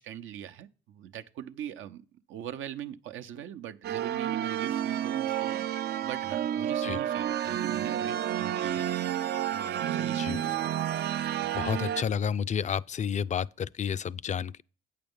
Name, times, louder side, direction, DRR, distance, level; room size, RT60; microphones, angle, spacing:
voice 1, 0.0-5.7 6.0-8.9 9.5-10.6, right 10 dB, 80° right, 0.8 m, -41 dB
sound 1, 3.8-12.0, right 11 dB, 55° right, 0.4 m, -30 dB
voice 2, 11.5-14.6, left 7 dB, 35° left, 0.4 m, -30 dB
8.8 x 6.8 x 5.3 m
cardioid pair, 90°, 20 cm